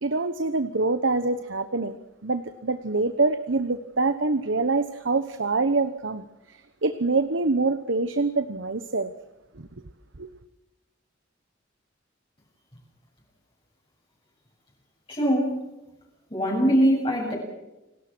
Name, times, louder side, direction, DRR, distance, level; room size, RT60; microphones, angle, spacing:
voice 1, 0.0-2.0 2.2-9.1 9.5-9.7 10.2-10.3, right 3 dB, 85° right, 11 dB, 1.1 m, -25 dB
voice 2, 15.1-15.6 16.3-17.3, equal, 30° left, -3 dB, 7.4 m, -22 dB
29.5 x 19.0 x 6.3 m, 0.98 s
head